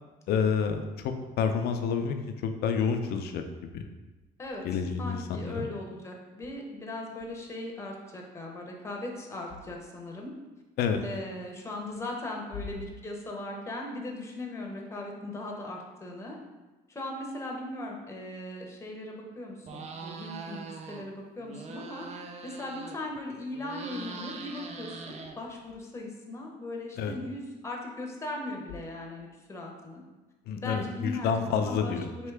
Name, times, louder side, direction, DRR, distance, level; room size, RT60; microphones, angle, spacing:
voice 1, 0.3-2.2 2.4-3.4 3.7-3.8 4.6-5.7 10.8-11.0 27.0-27.1 30.5-32.0, left 6 dB, 70° left, 6 dB, 0.5 m, -28 dB
voice 2, 4.4-10.3 11.0-16.4 16.9-22.1 22.4-30.0 30.6-32.3, left 2 dB, 15° left, 0 dB, 0.8 m, -38 dB
sound 1, 19.6-21.1 21.4-23.2 23.5-25.7, right 4 dB, 40° right, 0.5 m, -42 dB
4.5 x 2.8 x 3.3 m, 1.2 s
cardioid pair, 110°, 17 cm